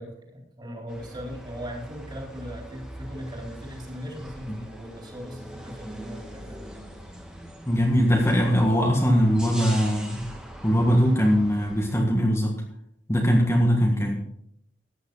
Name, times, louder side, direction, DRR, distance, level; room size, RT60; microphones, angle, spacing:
voice 1, 0.0-6.6, equal, 25° right, 0 dB, 3.8 m, -39 dB
sound 1, 0.9-12.0, right 1 dB, 5° right, 1.7 m, -42 dB
voice 2, 7.7-10.2 10.6-12.5 13.1-14.2, equal, 15° left, -1 dB, 1.6 m, -21 dB
14.5 x 9.6 x 4.0 m, 0.71 s
head